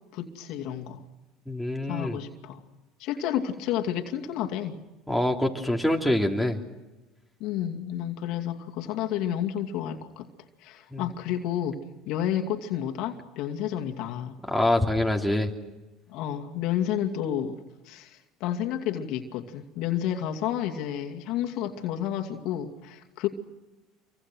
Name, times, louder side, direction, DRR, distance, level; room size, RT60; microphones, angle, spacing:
voice 1, 0.1-1.0 1.9-2.6 3.0-4.7 7.4-10.3 10.6-14.4 16.1-23.3, left 10 dB, 65° left, 3 dB, 2.5 m, -31 dB
voice 2, 1.5-2.2 5.1-6.6 10.9-11.0 14.5-15.5, left 1 dB, ahead, 3 dB, 3.5 m, -25 dB
28.0 x 24.0 x 6.3 m, 1.1 s
supercardioid pair, 90°, 0 cm